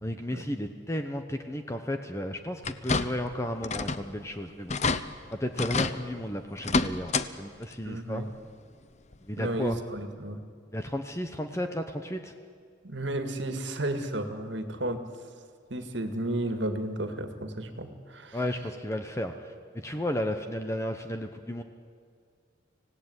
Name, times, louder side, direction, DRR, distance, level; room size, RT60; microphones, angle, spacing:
voice 1, 0.0-4.7 5.3-8.3 9.3-9.8 10.7-12.3 18.3-21.6, left 1 dB, 15° left, 6 dB, 1.0 m, -33 dB
sound 1, 2.6-3.3 3.6-4.1 4.4-4.5 4.7-5.0 5.6-5.9 6.6-7.3 7.6-7.7 9.1-9.2 9.7-9.8, left 3 dB, 35° left, 0.8 m, -28 dB
voice 2, 7.8-8.3 9.4-10.4 12.8-15.0 15.7-18.4, right 1 dB, 65° right, 7 dB, 2.1 m, -33 dB
25.5 x 17.0 x 9.8 m, 2.1 s
head